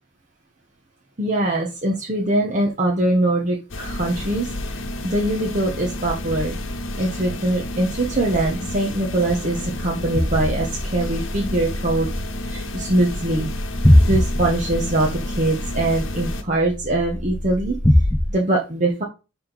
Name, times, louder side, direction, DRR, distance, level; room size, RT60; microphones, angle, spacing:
voice 1, 1.2-6.6 7.0-12.1 12.4-13.5 14.0-17.8 18.3-19.0, right 1 dB, 35° right, -2 dB, 1.1 m, -22 dB
sound 1, 3.7-16.4, left 1 dB, 65° left, 1.2 m, -31 dB
sound 2, 10.1-18.3, left 1 dB, 10° left, 0.4 m, -22 dB
10.5 x 3.7 x 4.0 m, 0.29 s
head